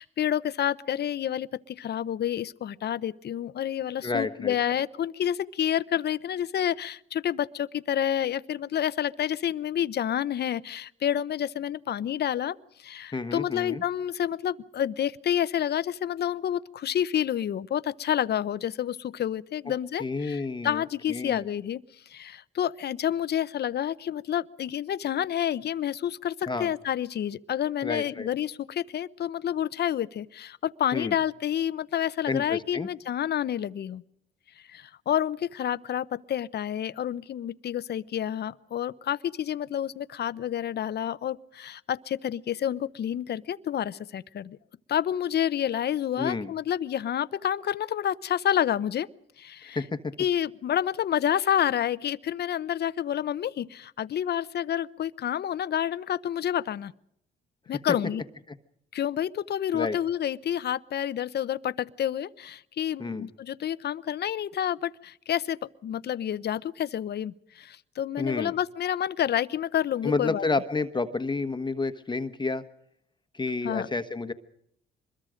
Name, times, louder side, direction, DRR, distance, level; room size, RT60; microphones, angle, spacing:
voice 1, 0.0-34.0 34.7-44.6 44.9-49.1 49.4-49.8 50.2-56.9 57.7-58.2 58.9-70.4 73.6-73.9, left 10 dB, 55° left, 17 dB, 0.8 m, -29 dB
voice 2, 4.0-4.5 13.1-13.8 20.0-20.8 21.1-21.4 26.5-26.7 27.8-28.3 30.9-31.2 32.3-32.9 46.2-46.5 49.7-50.1 57.7-57.8 59.7-60.0 63.0-63.3 68.2-68.5 70.0-72.6 73.3-74.3, left 3 dB, 25° left, 9 dB, 1.3 m, -30 dB
24.5 x 22.0 x 5.1 m, 0.73 s
cardioid pair, 90°, 20 cm